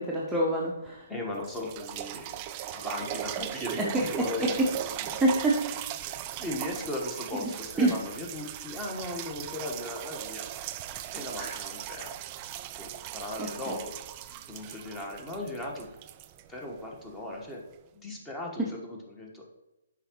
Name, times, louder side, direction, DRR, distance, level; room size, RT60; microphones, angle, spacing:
voice 1, 0.0-1.0 3.8-4.2 5.2-5.9 7.4-7.5 7.8-7.9 11.4-11.5 13.4-13.5, right 1 dB, 5° right, -5 dB, 0.8 m, -27 dB
sound 1, 0.9-1.0 1.4-17.1 17.7-17.8, right 12 dB, 30° right, 0.3 m, -39 dB
voice 2, 1.1-2.4 2.7-3.8 4.1-5.2 6.4-10.5 11.1-12.1 12.8-13.9 14.3-15.9 16.5-17.6 17.9-19.4, left 1 dB, 10° left, 0 dB, 1.3 m, -37 dB
6.6 x 4.9 x 3.0 m, 0.98 s
figure-of-eight pair, 135°, 0 cm